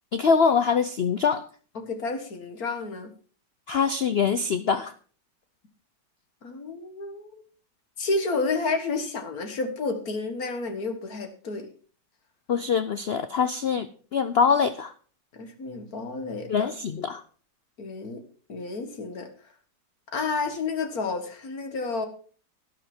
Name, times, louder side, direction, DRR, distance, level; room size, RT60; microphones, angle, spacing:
voice 1, 0.1-1.4 3.7-4.9 12.5-13.9 14.1-14.9 16.5-17.2, left 6 dB, 80° left, 12 dB, 0.5 m, -23 dB
voice 2, 1.8-3.1 6.4-7.4 8.0-11.7 15.3-16.7 17.8-18.2 18.5-19.3 20.1-22.1, left 3 dB, 55° left, 7 dB, 2.0 m, -30 dB
12.0 x 11.0 x 4.4 m, 0.40 s
omnidirectional pair, 1.9 m